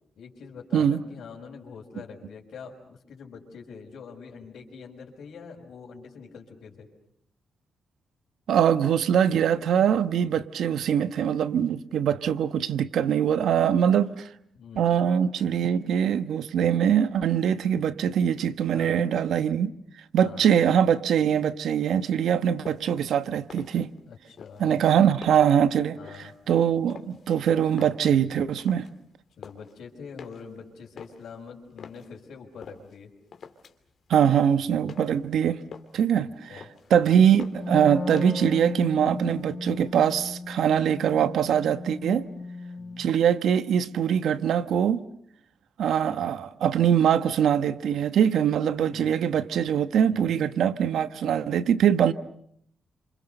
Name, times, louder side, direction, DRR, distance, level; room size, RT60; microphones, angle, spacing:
voice 1, 0.1-6.9 14.5-14.9 18.7-19.0 20.2-20.6 24.0-25.1 25.9-26.3 29.4-33.1 34.6-34.8 36.2-36.7 42.8-43.1 48.9-49.1 50.1-50.4, left 5 dB, 75° left, 5.0 m, -44 dB
voice 2, 8.5-14.3 14.8-19.7 20.1-23.9 24.6-28.9 34.1-35.6 35.9-36.6 36.9-42.3 43.0-45.0 45.8-52.1, right 8 dB, 85° right, 1.1 m, -23 dB
sound 1, 22.6-23.0 23.4-24.1 24.4-25.6 26.0-26.4 26.9-27.4 27.7-29.0 29.2-29.7 30.2-32.1 32.6-33.0 33.3-33.9 34.1-35.3 35.5-36.1 36.4-37.0 37.4-37.8 38.2-38.6 38.9-39.5, left 6 dB, 55° left, 2.7 m, -46 dB
Wind instrument woodwind instrument, 37.5-43.2, left 3 dB, 40° left, 1.8 m, -36 dB
29.0 x 27.5 x 6.7 m
wide cardioid pair, 145°, 0 cm